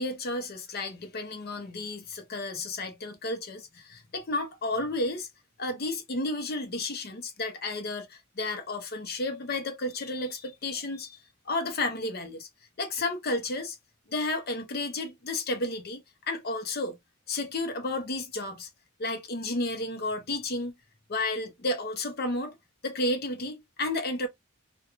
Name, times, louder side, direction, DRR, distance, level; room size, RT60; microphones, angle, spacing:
voice 1, 0.0-5.3 5.6-11.2 11.5-12.5 12.8-13.8 14.1-17.0 17.3-18.7 19.0-20.7 21.1-22.5 22.8-24.3, left 2 dB, 45° left, 0.6 m, -32 dB
2.4 x 2.2 x 2.9 m
head